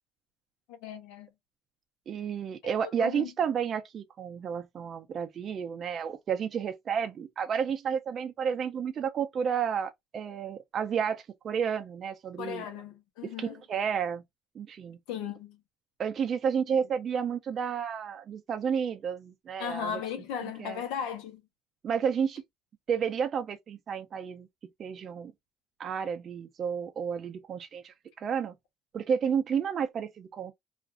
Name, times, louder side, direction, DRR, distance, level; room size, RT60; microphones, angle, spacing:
voice 1, 0.7-1.3 2.8-3.3 12.4-13.6 15.1-15.6 19.6-21.4, left 8 dB, 85° left, 0.8 m, -36 dB
voice 2, 2.1-12.6 13.2-14.2 14.6-15.0 16.0-20.0 20.6-20.8 21.8-22.4 22.9-24.5 24.8-25.3 25.8-28.5 28.9-30.5, right 7 dB, 45° right, 0.4 m, -31 dB
2.4 x 2.3 x 2.4 m
supercardioid pair, 100°, 0 cm